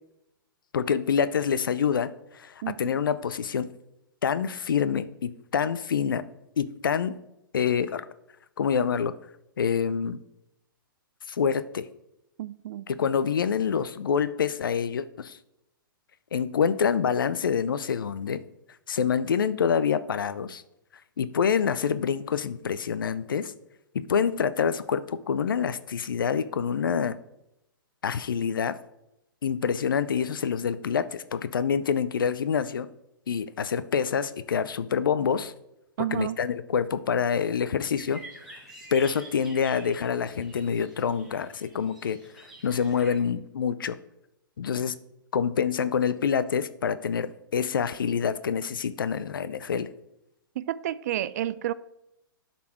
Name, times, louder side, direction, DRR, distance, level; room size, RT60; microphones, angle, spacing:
voice 1, 0.7-2.1 2.3-3.7 4.2-6.2 6.6-7.2 7.5-8.1 8.6-9.1 9.6-10.2 11.3-11.9 12.9-15.4 16.3-18.4 18.9-20.6 21.2-23.5 23.9-27.2 28.0-28.8 29.4-32.9 33.3-35.5 36.1-38.2 38.9-44.0 44.6-44.9 45.3-49.9, left 7 dB, 70° left, 0.5 m, -26 dB
voice 2, 12.4-12.8 36.0-36.4 50.6-51.7, right 13 dB, 50° right, 0.4 m, -30 dB
sound 1, 38.0-43.2, right 2 dB, ahead, 2.4 m, -48 dB
11.5 x 4.2 x 4.5 m
figure-of-eight pair, 115°, 12 cm